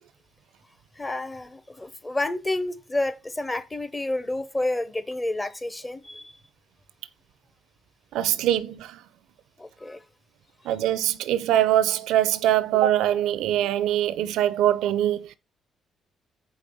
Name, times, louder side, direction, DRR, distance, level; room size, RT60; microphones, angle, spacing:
voice 1, 1.0-6.3 9.6-10.0, left 2 dB, 20° left, 0.7 m, -30 dB
voice 2, 8.1-9.0 10.6-15.4, right 12 dB, 90° right, 0.4 m, -23 dB
4.8 x 4.2 x 5.3 m
cardioid pair, 90°, 0 cm